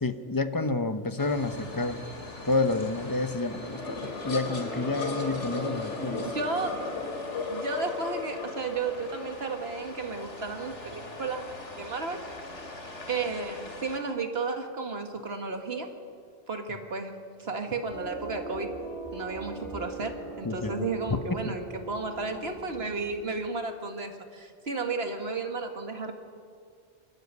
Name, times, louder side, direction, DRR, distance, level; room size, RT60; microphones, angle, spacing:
voice 1, 0.0-2.0 2.4-6.3 20.4-20.9 21.4-21.5, left 2 dB, 20° left, 10 dB, 0.9 m, -29 dB
sound 1, 1.2-14.0, left 3 dB, 80° left, 2.9 m, -37 dB
voice 2, 6.3-6.9 7.5-12.2 13.1-15.9 16.5-18.8 19.1-26.1, right 4 dB, 60° right, 5 dB, 2.1 m, -33 dB
sound 2, 17.9-23.2, right 2 dB, 25° right, 8.1 m, -41 dB
25.5 x 13.5 x 9.6 m, 2.2 s
omnidirectional pair, 1.2 m